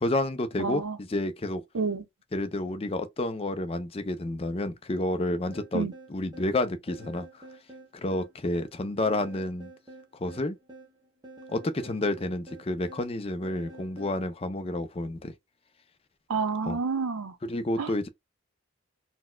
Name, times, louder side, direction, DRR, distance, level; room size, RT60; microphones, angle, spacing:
voice 1, 0.0-1.6 2.3-7.4 7.9-9.7 10.1-10.6 11.5-15.3 16.7-16.8 17.4-18.1, left 1 dB, 25° left, 0.4 m, -30 dB
voice 2, 0.6-1.0 1.7-2.0 5.7-5.9 16.3-17.3 17.8-18.1, right 4 dB, 85° right, 0.6 m, -29 dB
sound 1, 5.5-14.2, right 2 dB, 20° right, 0.9 m, -49 dB
4.1 x 2.1 x 2.2 m
head